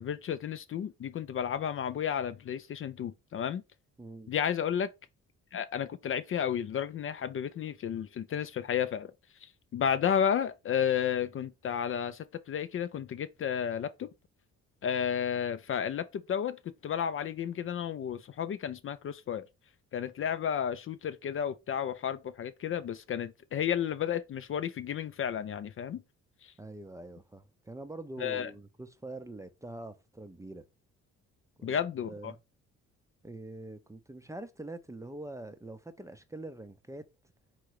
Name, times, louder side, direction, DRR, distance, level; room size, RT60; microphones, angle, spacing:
voice 1, 0.0-3.6 4.3-4.9 5.5-9.1 9.4-14.1 14.8-19.5 19.9-26.0 26.4-26.5 28.2-28.5 31.6-32.3, left 8 dB, 45° left, 0.4 m, -32 dB
voice 2, 4.0-4.3 26.6-30.7 31.6-32.4 33.2-37.1, right 2 dB, 10° right, 0.5 m, -44 dB
3.7 x 3.1 x 4.7 m
cardioid pair, 90°, 30 cm